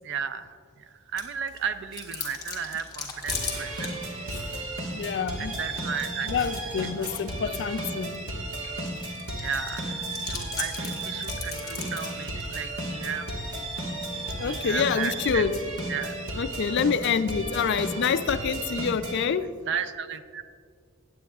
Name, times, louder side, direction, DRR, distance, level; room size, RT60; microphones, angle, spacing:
voice 1, 0.0-0.5 0.8-4.0 5.4-6.6 7.0-7.2 7.5-7.6 9.4-13.3 14.4-15.5 15.9-16.2 19.6-20.4, right 7 dB, 55° right, 11 dB, 0.4 m, -34 dB
Chewing mastication, 1.2-18.8, left 5 dB, 15° left, 1.6 m, -42 dB
sound 1, 3.3-19.2, right 1 dB, 70° right, 1.5 m, -34 dB
voice 2, 4.9-5.5 6.2-8.2 14.4-15.5 16.3-19.4, left 6 dB, 50° left, 11 dB, 0.4 m, -27 dB
17.5 x 8.6 x 2.4 m, 2.1 s
head